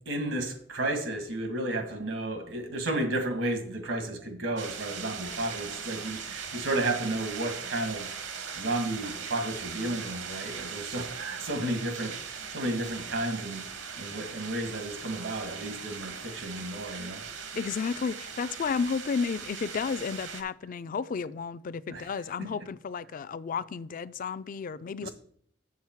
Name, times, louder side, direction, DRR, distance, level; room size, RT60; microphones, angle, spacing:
voice 1, 0.0-8.1 8.6-13.6 14.0-17.2 21.9-22.1 25.0-25.1, right 1 dB, 85° right, 1.9 m, -32 dB
sound 1, 4.6-20.4, right 6 dB, 65° right, 1.0 m, -40 dB
voice 2, 17.6-25.1, left 5 dB, 45° left, 0.3 m, -32 dB
7.4 x 7.2 x 4.5 m
head